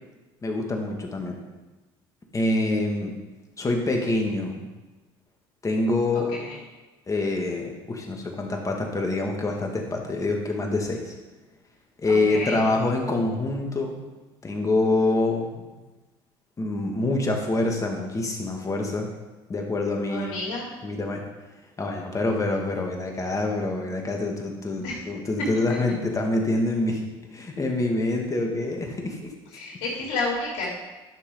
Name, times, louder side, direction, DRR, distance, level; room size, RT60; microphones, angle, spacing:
voice 1, 0.4-1.4 2.3-3.1 3.6-4.7 5.6-6.3 7.1-11.1 12.0-13.9 14.4-15.6 16.6-19.1 19.5-20.5 20.8-21.2 21.8-27.0 27.3-29.3, left 2 dB, 25° left, 1 dB, 2.1 m, -26 dB
voice 2, 12.0-12.7 20.1-20.7 24.8-25.0 25.4-25.8 29.5-30.7, left 2 dB, 75° left, -5 dB, 3.3 m, -30 dB
11.5 x 6.4 x 3.9 m, 1.1 s
hypercardioid pair, 75°, 13 cm